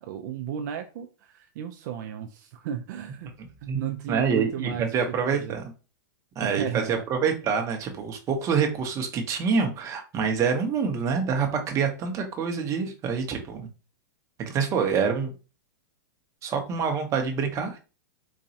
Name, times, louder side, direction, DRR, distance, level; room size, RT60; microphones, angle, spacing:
voice 1, 0.0-3.3 3.6-5.6 6.4-7.0, right 9 dB, 60° right, 4 dB, 0.4 m, -34 dB
voice 2, 3.7-5.6 6.4-13.7 14.4-15.3 16.4-17.8, right 6 dB, 30° right, 4 dB, 0.7 m, -26 dB
4.0 x 2.2 x 2.7 m, 0.33 s
hypercardioid pair, 130°, 11 cm